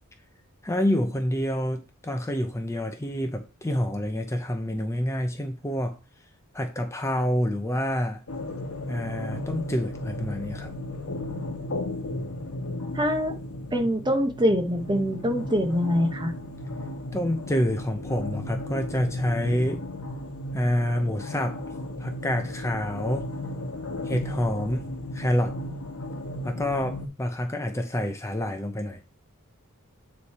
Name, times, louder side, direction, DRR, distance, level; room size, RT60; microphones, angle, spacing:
voice 1, 0.6-6.0 6.5-8.2 8.9-10.7 17.1-19.8 20.5-21.6 22.0-23.3 24.0-24.9 25.1-25.6 26.4-29.0, equal, 15° left, 0.6 m, -27 dB
sound 1, 8.3-27.1, left 1 dB, 70° left, 1.1 m, -35 dB
voice 2, 12.9-13.4 13.7-16.3, equal, 20° right, 0.9 m, -24 dB
8.3 x 3.2 x 4.2 m
head